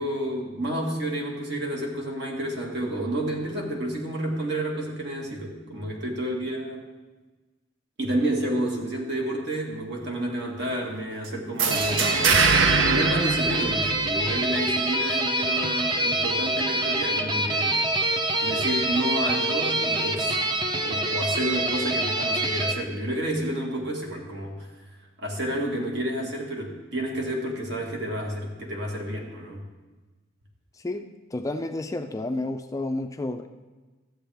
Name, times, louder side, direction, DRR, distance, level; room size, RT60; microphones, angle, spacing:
voice 1, 0.0-6.9 8.0-12.1 12.9-17.8 18.4-24.7 25.2-29.6, right 1 dB, 60° right, 0 dB, 1.8 m, -30 dB
sound 1, 11.6-14.3, right 4 dB, 75° right, 0.6 m, -23 dB
sound 2, 11.7-22.7, right 1 dB, 25° right, 0.6 m, -26 dB
voice 2, 30.8-33.5, left 2 dB, 15° left, 7 dB, 0.4 m, -31 dB
13.0 x 8.0 x 3.4 m, 1.2 s
head